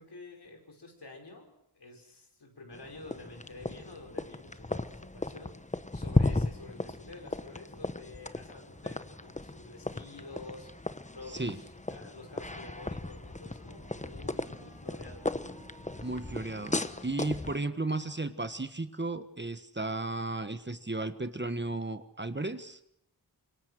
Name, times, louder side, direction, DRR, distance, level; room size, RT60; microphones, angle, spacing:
voice 1, 0.0-5.5 5.9-10.7 11.1-15.2, left 2 dB, 80° left, 2 dB, 5.5 m, -49 dB
sound 1, 2.7-17.6, left 2 dB, 20° left, 1.1 m, -36 dB
Wind instrument woodwind instrument, 12.9-19.0, right 3 dB, 85° right, 5.7 m, -58 dB
voice 2, 16.0-22.8, right 2 dB, 25° right, 10 dB, 1.4 m, -34 dB
25.5 x 23.0 x 6.5 m, 0.77 s
wide cardioid pair, 50°, 40 cm